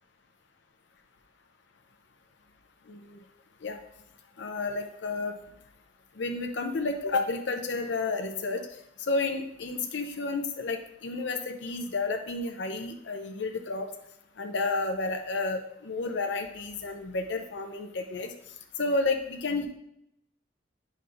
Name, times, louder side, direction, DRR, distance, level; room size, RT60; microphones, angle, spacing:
voice 1, 2.9-3.2 3.6-3.8 4.4-5.3 6.2-8.7 9.0-13.9 14.4-18.3 18.8-19.7, left 3 dB, 65° left, 4 dB, 0.6 m, -31 dB
8.5 x 5.4 x 2.5 m, 0.78 s
head